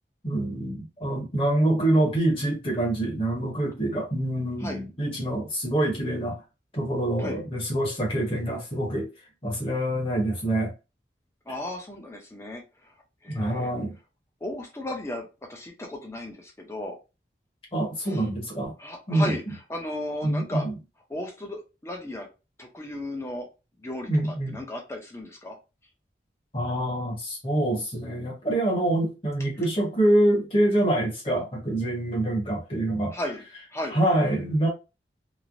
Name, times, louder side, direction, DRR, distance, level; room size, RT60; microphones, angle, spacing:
voice 1, 0.2-6.4 6.7-9.1 9.4-10.7 13.3-13.9 17.7-18.7 19.1-19.3 20.2-20.7 24.1-24.6 26.5-33.1 33.9-34.7, right 1 dB, 30° left, 1.0 m, -25 dB
voice 2, 11.5-12.9 13.2-13.7 14.4-17.0 18.0-18.3 18.8-20.6 21.1-22.3 22.6-23.5 23.8-25.6 33.1-33.4 33.7-34.0, left 1 dB, 15° left, 0.6 m, -35 dB
3.1 x 2.0 x 2.5 m
head